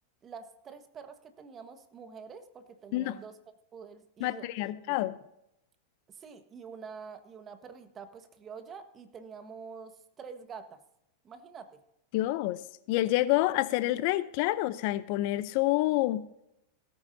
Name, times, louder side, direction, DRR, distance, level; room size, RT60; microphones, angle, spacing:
voice 1, 0.2-3.4 3.7-5.0 6.1-10.8 11.2-11.8, right 6 dB, 30° right, 9 dB, 1.4 m, -47 dB
voice 2, 4.2-5.2 12.1-16.3, left 16 dB, 55° left, 16 dB, 0.6 m, -28 dB
17.0 x 9.4 x 2.7 m, 0.81 s
hypercardioid pair, 105°, 0 cm